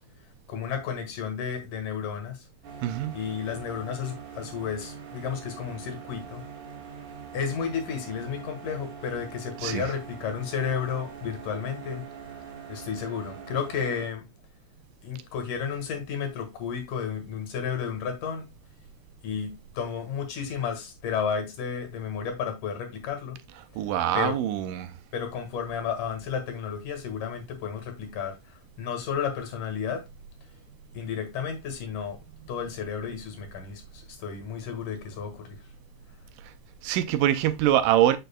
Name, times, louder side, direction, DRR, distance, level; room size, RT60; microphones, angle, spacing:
voice 1, 0.5-2.4 3.1-6.4 7.3-12.0 12.7-14.3 15.0-18.5 19.2-23.4 24.1-24.4 25.1-30.0 30.9-32.2 32.5-35.6, left 7 dB, 75° left, 3.1 m, -32 dB
sound 1, 2.6-14.1, right 6 dB, 50° right, 2.2 m, -43 dB
voice 2, 2.8-3.1 9.6-9.8 23.8-24.9 36.8-38.2, right 12 dB, 85° right, 2.3 m, -24 dB
6.6 x 6.3 x 2.2 m
omnidirectional pair, 3.8 m